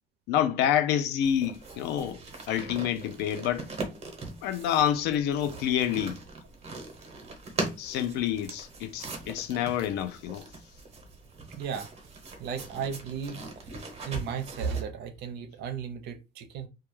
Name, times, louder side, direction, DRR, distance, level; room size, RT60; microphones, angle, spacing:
voice 1, 0.3-2.2 2.5-3.7 4.4-6.2 7.8-10.5, left 10 dB, 90° left, 0.4 m, -28 dB
sound 1, 1.2-14.8, right 3 dB, 40° right, 0.9 m, -41 dB
voice 2, 11.5-11.9 12.4-13.4 14.0-16.7, right 7 dB, 75° right, 0.6 m, -35 dB
2.2 x 2.2 x 3.0 m
cardioid pair, 110°, 17 cm